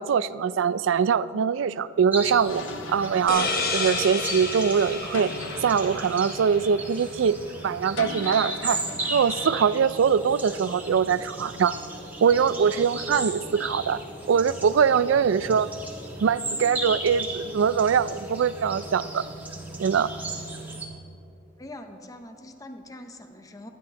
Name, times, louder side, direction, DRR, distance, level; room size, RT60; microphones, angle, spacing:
voice 1, 0.0-2.6 2.9-5.3 5.6-7.4 7.6-8.8 9.1-11.7 12.2-14.0 14.3-15.7 16.2-19.2 19.8-20.1, right 6 dB, 75° right, 17 dB, 0.4 m, -23 dB
sound 1, 2.1-20.9, right 2 dB, 10° right, 1.6 m, -36 dB
sound 2, 2.5-9.8, left 4 dB, 75° left, 0.6 m, -41 dB
sound 3, 3.3-6.7, left 3 dB, 50° left, 1.2 m, -31 dB
voice 2, 21.6-23.7, left 1 dB, 20° left, 6 dB, 0.7 m, -43 dB
24.0 x 10.0 x 2.9 m, 2.7 s
head